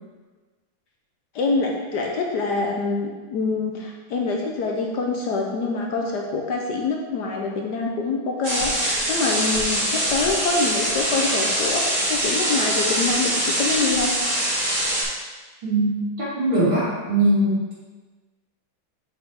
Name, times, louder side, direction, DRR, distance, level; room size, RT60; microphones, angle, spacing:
voice 1, 1.3-14.1, left 3 dB, 65° left, 0 dB, 1.2 m, -25 dB
sound 1, 8.4-15.0, right 1 dB, 50° right, 2.3 m, -23 dB
voice 2, 15.6-17.7, right 1 dB, 70° right, -9 dB, 3.2 m, -21 dB
7.3 x 5.5 x 3.4 m, 1.3 s
omnidirectional pair, 2.1 m